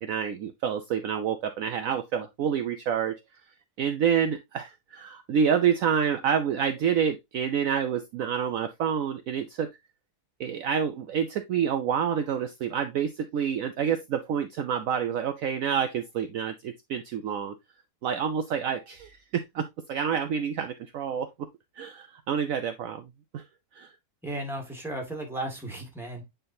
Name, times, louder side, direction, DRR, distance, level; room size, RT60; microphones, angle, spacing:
voice 1, 0.0-3.2 3.8-9.7 10.4-17.5 18.0-21.5 21.8-23.1 23.3-23.4 23.7-23.9, right 7 dB, 65° right, 0.9 m, -28 dB
voice 2, 24.2-26.3, right 1 dB, ahead, 1.9 m, -35 dB
8.9 x 3.9 x 2.7 m
omnidirectional pair, 1.7 m